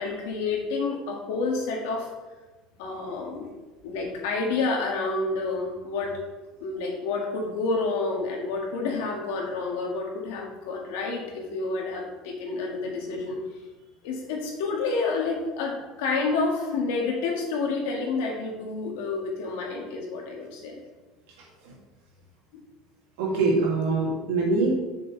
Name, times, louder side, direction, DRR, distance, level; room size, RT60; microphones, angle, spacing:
voice 1, 0.0-2.1 2.8-3.5 3.8-6.1 6.6-13.4 14.0-20.8 22.5-22.6 24.6-24.7, left 3 dB, 80° left, 0 dB, 2.0 m, -29 dB
voice 2, 23.2-24.7, right 3 dB, 85° right, -2 dB, 2.5 m, -24 dB
7.8 x 6.3 x 3.3 m, 1.2 s
supercardioid pair, 125°, 0 cm